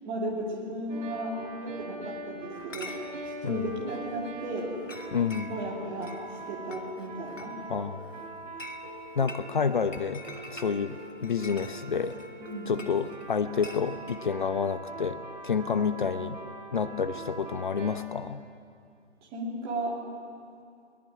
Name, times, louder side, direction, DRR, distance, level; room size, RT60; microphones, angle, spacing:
voice 1, 0.0-3.0 3.2-4.7 5.5-6.1 6.5-7.6 12.4-12.7 19.3-20.0, right 1 dB, 15° right, -4 dB, 3.0 m, -35 dB
sound 1, 0.9-17.9, right 2 dB, 45° right, 5.8 m, -42 dB
Chatter / Chink clink, 2.5-14.2, left 2 dB, 85° left, 2.6 m, -48 dB
voice 2, 5.1-5.5 7.7-8.1 9.2-10.2 10.5-12.1 12.7-16.4 16.7-18.4, left 6 dB, 40° left, 11 dB, 0.9 m, -29 dB
22.5 x 19.0 x 9.8 m, 2.3 s
hypercardioid pair, 160°, 37 cm